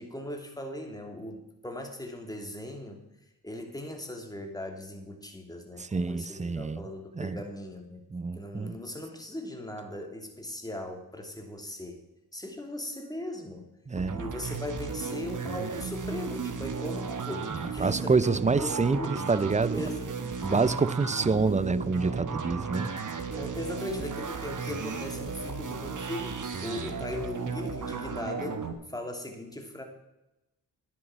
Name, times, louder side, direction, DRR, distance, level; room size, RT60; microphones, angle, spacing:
voice 1, 0.0-3.0 3.4-8.0 8.3-12.0 12.3-13.7 14.1-19.2 19.7-20.7 23.3-29.8, left 1 dB, 10° left, 2.8 m, -39 dB
voice 2, 5.8-6.8 7.2-7.4 8.1-8.8 13.9-14.2 17.8-19.8 20.4-22.9, right 4 dB, 15° right, 0.5 m, -27 dB
sound 1, 14.0-28.7, right 5 dB, 45° right, 1.4 m, -35 dB
10.5 x 8.2 x 6.0 m
supercardioid pair, 45°, 42 cm